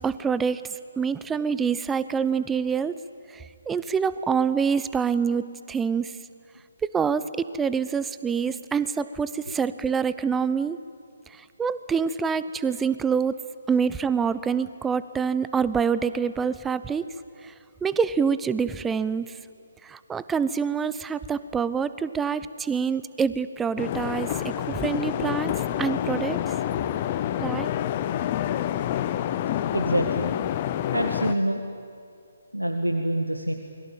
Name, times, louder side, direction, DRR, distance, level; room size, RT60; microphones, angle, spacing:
voice 1, 0.0-2.9 3.3-6.1 6.8-10.8 11.3-13.4 13.7-17.0 17.4-17.5 17.8-19.3 19.8-26.4 27.4-27.7, right 6 dB, 10° right, 15 dB, 0.7 m, -26 dB
sound 1, 23.8-31.3, left 11 dB, 30° left, 0.9 m, -28 dB
voice 2, 29.7-30.3 30.9-31.6 32.5-33.5, right 1 dB, 90° right, 4 dB, 1.9 m, -26 dB
28.5 x 22.0 x 9.0 m, 2.4 s
figure-of-eight pair, 140°, 0 cm